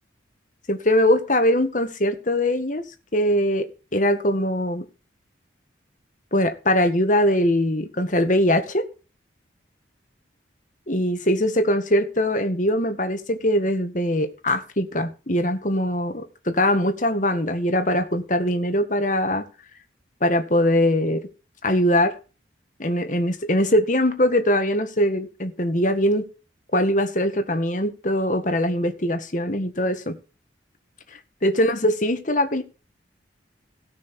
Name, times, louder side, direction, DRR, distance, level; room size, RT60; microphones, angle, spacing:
voice 1, 0.7-2.8 3.1-4.9 6.3-8.9 10.9-19.5 20.2-21.3 21.6-22.1 22.8-26.3 26.7-30.2 31.4-32.6, left 1 dB, 45° left, 7 dB, 1.9 m, -22 dB
17.5 x 6.2 x 4.5 m, 0.33 s
head